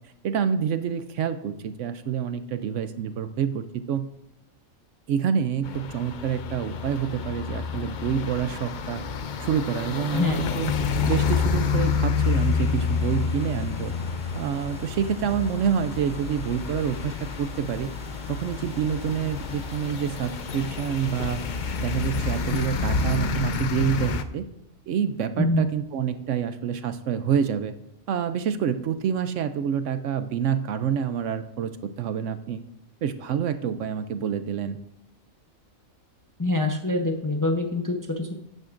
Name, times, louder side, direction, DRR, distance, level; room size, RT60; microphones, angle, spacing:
voice 1, 0.2-4.1 5.1-9.0 9.4-10.7 11.1-13.9 14.3-17.1 17.4-17.9 18.3-21.4 21.8-24.5 24.9-27.7 28.1-32.6 33.0-34.8, right 8 dB, 70° right, 10 dB, 0.8 m, -27 dB
sound 1, 5.6-24.2, left 5 dB, 65° left, 0.4 m, -29 dB
sound 2, 12.1-23.3, right 1 dB, 5° right, 1.1 m, -48 dB
voice 2, 36.4-38.4, left 2 dB, 20° left, 3 dB, 0.6 m, -25 dB
12.5 x 9.0 x 2.5 m, 0.79 s
omnidirectional pair, 1.4 m